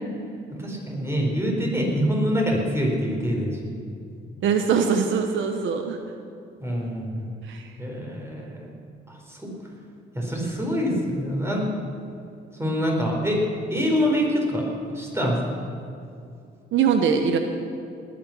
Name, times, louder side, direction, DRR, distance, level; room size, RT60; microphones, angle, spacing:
voice 1, 0.6-3.7 6.6-7.3 7.8-8.7 9.1-9.5 10.1-11.7 12.6-13.4 13.7-14.7 14.9-15.4, equal, 15° right, -1 dB, 4.5 m, -25 dB
voice 2, 4.4-6.0 7.5-7.7 16.7-17.4, right 6 dB, 75° right, 6 dB, 1.1 m, -22 dB
20.0 x 9.5 x 6.0 m, 2.5 s
cardioid pair, 90°, 20 cm